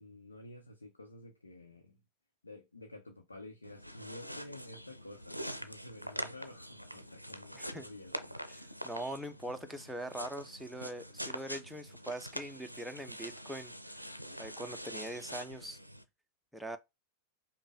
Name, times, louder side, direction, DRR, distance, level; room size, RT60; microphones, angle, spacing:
voice 1, 0.0-2.0 2.4-8.3, left 2 dB, 80° left, 0.8 m, -51 dB
sound 1, 3.6-16.0, equal, 90° right, 0.5 m, -44 dB
voice 2, 7.5-7.9 8.5-13.7 14.4-15.8 16.5-16.8, right 1 dB, ahead, 0.5 m, -42 dB
5.2 x 2.2 x 3.5 m
figure-of-eight pair, 90°, 0 cm